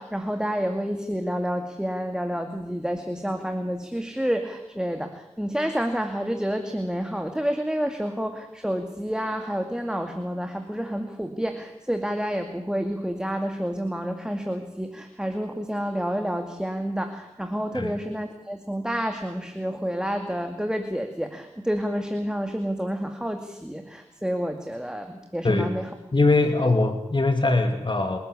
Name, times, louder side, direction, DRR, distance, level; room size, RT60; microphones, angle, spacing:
voice 1, 0.0-25.9, equal, 5° right, 6 dB, 2.3 m, -29 dB
voice 2, 26.1-28.2, left 2 dB, 40° left, 6 dB, 2.6 m, -22 dB
28.0 x 13.0 x 8.5 m, 0.90 s
cardioid pair, 40°, 12 cm